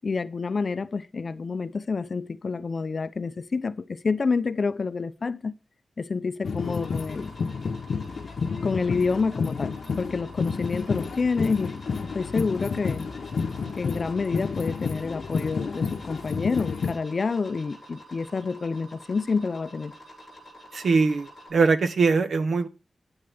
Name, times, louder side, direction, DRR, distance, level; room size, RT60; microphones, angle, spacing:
voice 1, 0.0-5.5 6.0-7.3 8.6-11.7 12.1-13.1 13.7-19.9, left 4 dB, 45° left, 0.7 m, -28 dB
sound 1, 6.4-16.9, left 5 dB, 75° left, 0.9 m, -30 dB
sound 2, 6.6-21.5, equal, 5° right, 8.0 m, -48 dB
voice 2, 20.7-22.7, right 4 dB, 70° right, 0.9 m, -22 dB
14.5 x 9.7 x 3.5 m
wide cardioid pair, 170°, 0 cm